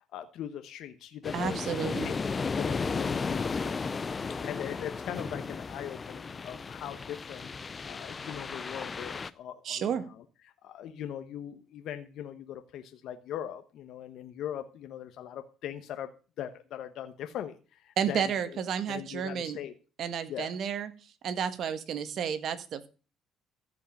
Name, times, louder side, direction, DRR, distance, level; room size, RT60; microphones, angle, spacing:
voice 1, 0.1-2.1 2.5-7.5 7.8-16.1 16.4-18.6 18.9-19.7 20.3-20.5, left 10 dB, 65° left, 8 dB, 1.2 m, -41 dB
sound 1, 1.2-9.3, left 4 dB, 30° left, 0.6 m, -34 dB
voice 2, 1.3-2.1 9.7-10.1 18.0-19.6 20.0-20.9 21.2-22.9, right 8 dB, 55° right, 11 dB, 1.7 m, -31 dB
15.0 x 5.4 x 8.5 m, 0.35 s
cardioid pair, 100°, 0 cm